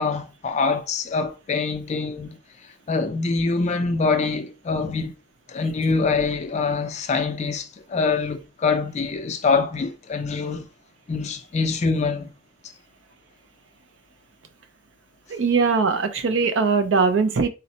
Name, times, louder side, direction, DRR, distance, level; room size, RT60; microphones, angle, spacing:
voice 1, 0.0-5.1 5.5-10.7 11.1-12.3, left 4 dB, 35° left, 0.3 m, -24 dB
voice 2, 15.3-17.5, right 5 dB, 65° right, 0.5 m, -20 dB
3.9 x 2.1 x 2.7 m
head